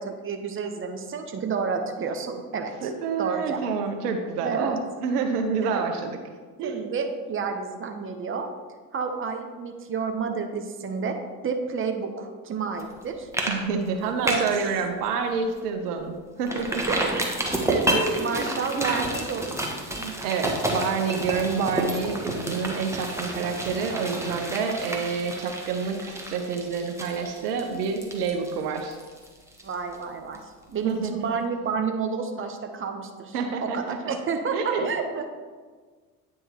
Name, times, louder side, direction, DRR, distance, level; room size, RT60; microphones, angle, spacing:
voice 1, 0.0-2.9 3.2-3.7 4.4-4.8 5.6-5.8 6.6-8.5 8.9-11.2 11.4-13.3 14.2-14.4 16.9-17.2 17.7-17.8 18.2-19.6 29.6-30.4 30.7-33.3 33.6-35.3, right 5 dB, 25° right, 5 dB, 0.9 m, -30 dB
voice 2, 2.8-6.2 6.6-6.8 13.5-16.9 17.9-18.5 18.8-19.1 19.7-29.0 30.8-31.3 33.3-34.2 34.5-34.9, right 5 dB, 80° right, 5 dB, 0.8 m, -28 dB
sound 1, 12.8-13.0 13.3-13.6 13.9-14.6 15.1-15.2 15.6-15.7 16.5-30.0 30.3-30.4, right 1 dB, 5° right, 1.3 m, -30 dB
9.1 x 3.7 x 4.5 m, 1.5 s
hypercardioid pair, 65°, 46 cm